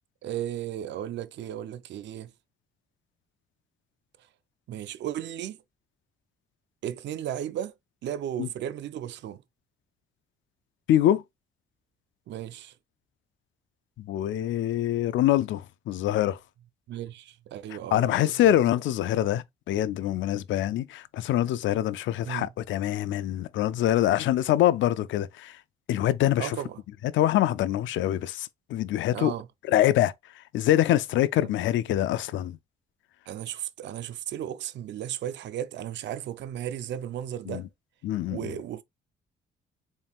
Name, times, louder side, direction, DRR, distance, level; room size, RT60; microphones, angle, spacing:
voice 1, 0.2-2.3 4.7-5.6 6.8-7.7 8.0-9.4 12.3-12.7 16.9-18.6 22.3-22.5 26.4-26.8 29.1-29.5 31.4-31.5 33.3-37.7 38.3-38.8, right 11 dB, 65° right, 0.5 m, -35 dB
voice 2, 10.9-11.2 14.0-16.4 17.9-25.6 25.9-26.6 27.1-29.3 29.7-30.1 30.5-32.6 37.5-37.6 38.0-38.5, left 12 dB, 70° left, 0.4 m, -25 dB
4.1 x 3.5 x 2.3 m
cardioid pair, 90°, 20 cm